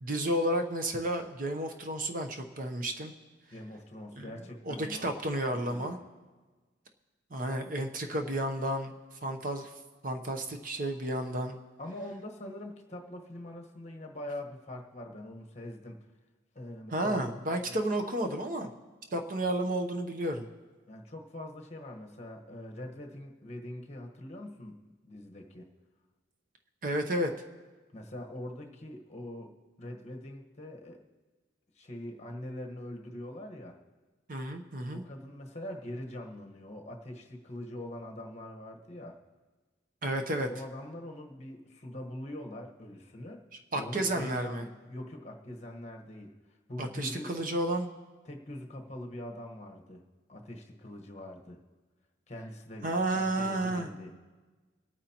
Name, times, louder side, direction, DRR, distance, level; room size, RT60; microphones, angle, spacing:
voice 1, 0.0-3.1 4.2-4.4 4.6-6.0 7.3-8.9 9.2-9.7 10.0-11.5 16.9-18.7 19.1-20.5 26.8-27.3 34.3-35.0 40.0-40.5 43.7-44.6 46.8-47.9 52.8-53.9, right 1 dB, 45° right, 5 dB, 0.8 m, -31 dB
voice 2, 3.5-5.1 5.5-5.9 11.8-16.0 16.5-17.3 17.7-17.8 20.9-24.7 25.0-25.6 27.9-31.0 31.7-33.8 34.9-39.2 40.5-43.4 43.8-46.3 46.7-47.3 48.2-50.0 50.3-51.6 52.3-54.1, left 1 dB, 35° left, 1 dB, 1.3 m, -43 dB
24.5 x 9.1 x 2.9 m, 1.3 s
head